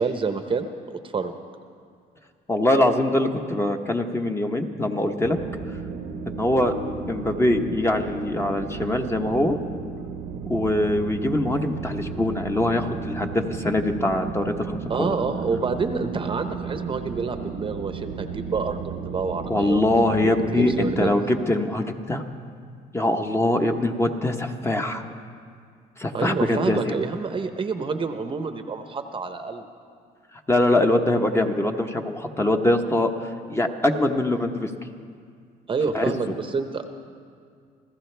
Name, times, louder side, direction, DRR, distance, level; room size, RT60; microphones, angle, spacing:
voice 1, 0.0-1.3 14.9-19.8 20.2-21.2 26.1-29.7 35.7-37.0, right 4 dB, 30° right, 7 dB, 0.9 m, -28 dB
voice 2, 2.5-5.4 6.3-6.7 7.1-9.6 10.5-15.1 19.5-22.2 22.9-25.0 26.0-26.8 30.5-34.9 35.9-36.1, left 1 dB, 15° left, 4 dB, 1.0 m, -23 dB
sound 1, 5.2-21.1, right 5 dB, 80° right, 1.0 m, -34 dB
27.0 x 15.0 x 3.4 m, 2.2 s
cardioid pair, 110°, 17 cm